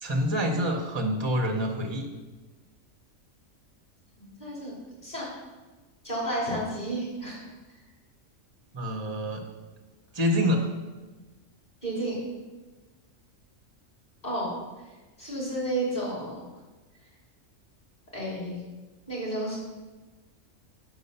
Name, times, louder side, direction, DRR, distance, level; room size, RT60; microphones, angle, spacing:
voice 1, 0.0-2.1 8.7-9.5 10.1-10.7, equal, 25° right, 2 dB, 0.7 m, -26 dB
voice 2, 4.2-4.7 5.0-5.3 6.0-7.4 11.8-12.2 14.2-14.5 15.2-16.4 18.1-18.6 19.1-19.6, right 1 dB, 35° left, -5 dB, 3.2 m, -31 dB
6.1 x 5.5 x 6.7 m, 1.2 s
omnidirectional pair, 1.4 m